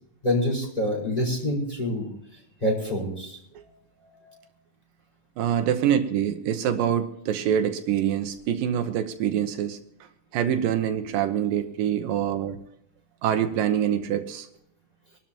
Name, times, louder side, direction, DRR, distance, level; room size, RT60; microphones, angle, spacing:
voice 1, 0.2-2.1 2.6-3.4 4.0-4.4, left 1 dB, 10° left, -2 dB, 5.4 m, -26 dB
voice 2, 5.4-9.8 10.3-12.6 13.2-14.5, right 9 dB, 80° right, 7 dB, 2.6 m, -25 dB
24.5 x 12.5 x 3.0 m, 0.74 s
omnidirectional pair, 4.0 m